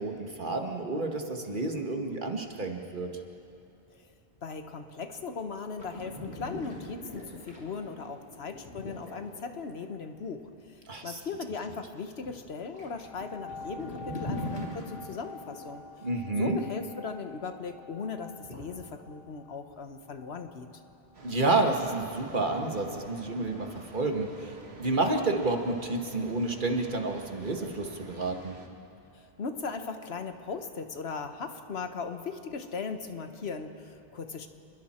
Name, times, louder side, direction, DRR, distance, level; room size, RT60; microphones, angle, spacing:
voice 1, 0.0-3.1 10.9-11.2 16.0-16.6 21.2-24.5 24.8-28.6, right 2 dB, 50° right, 3 dB, 1.7 m, -30 dB
voice 2, 4.4-10.4 10.7-15.8 16.4-20.7 29.4-34.5, left 5 dB, 75° left, 7 dB, 1.4 m, -38 dB
sound 1, 5.8-9.7 12.2-12.4 12.7-15.7 18.4-18.6, left 1 dB, 60° left, 3.9 m, -41 dB
sound 2, 13.0-22.2 22.8-22.9, left 3 dB, 25° left, 2.2 m, -48 dB
sound 3, 21.1-28.7, right 3 dB, 90° right, 1.9 m, -49 dB
29.0 x 22.0 x 4.4 m, 2.6 s
omnidirectional pair, 1.1 m